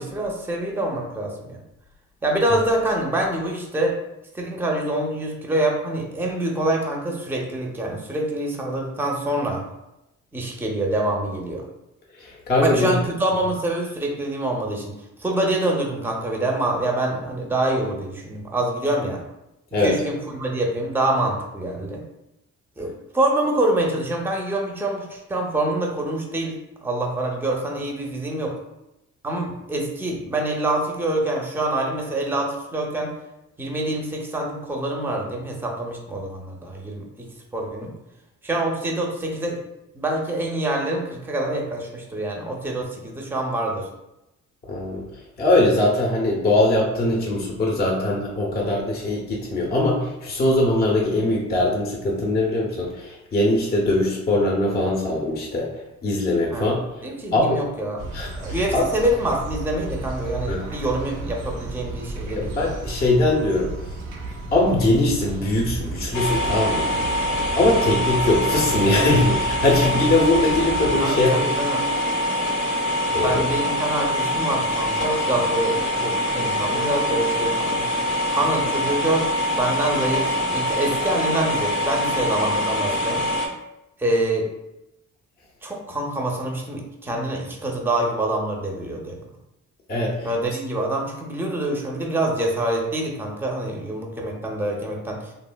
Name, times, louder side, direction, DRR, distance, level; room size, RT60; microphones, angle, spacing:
voice 1, 0.0-1.6 2.2-4.0 4.3-9.6 10.3-11.6 12.6-14.9 15.2-19.2 19.8-22.0 22.8-26.6 26.8-28.5 29.2-33.1 33.6-37.3 37.5-37.9 38.4-39.6 39.9-43.9 56.5-56.7 57.0-58.0 58.4-62.6 71.0-71.9 73.2-77.8 78.3-79.3 79.6-83.2 84.0-84.5 85.6-89.2 90.2-95.2, right 1 dB, 5° right, 0 dB, 0.5 m, -25 dB
voice 2, 12.2-13.0 19.7-20.0 44.6-45.0 45.4-56.9 57.3-57.6 58.1-58.8 60.5-60.7 62.3-63.7 64.5-66.9 67.6-71.5 73.1-73.5 89.9-90.3, left 2 dB, 35° left, -2 dB, 0.6 m, -21 dB
sound 1, 58.0-71.0, right 2 dB, 90° right, 0.5 m, -33 dB
sound 2, 66.1-83.5, equal, 75° left, 0.7 m, -24 dB
3.1 x 2.4 x 2.2 m, 0.92 s
cardioid pair, 90°, 30 cm